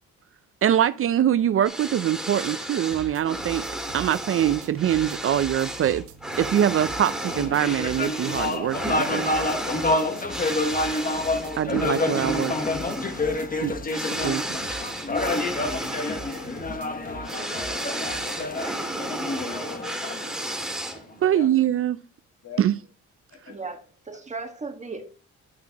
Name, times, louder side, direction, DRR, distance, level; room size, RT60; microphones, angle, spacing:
voice 1, 0.6-3.6 3.9-6.0 6.4-9.2 11.6-12.5 13.6-13.7 14.2-14.4 21.2-22.0 22.6-22.7, right 10 dB, 45° right, 0.5 m, -23 dB
sound 1, 1.6-21.2, right 1 dB, ahead, 2.3 m, -33 dB
sound 2, 2.9-18.5, right 4 dB, 75° right, 1.2 m, -44 dB
sound 3, 7.3-20.9, left 2 dB, 30° left, 1.2 m, -28 dB
voice 2, 14.1-14.5 20.3-21.5 22.4-22.6 23.3-23.6, left 6 dB, 60° left, 2.8 m, -45 dB
voice 3, 23.5-23.8 24.0-25.1, right 4 dB, 25° right, 1.5 m, -36 dB
10.5 x 5.8 x 2.9 m
cardioid pair, 90°, 30 cm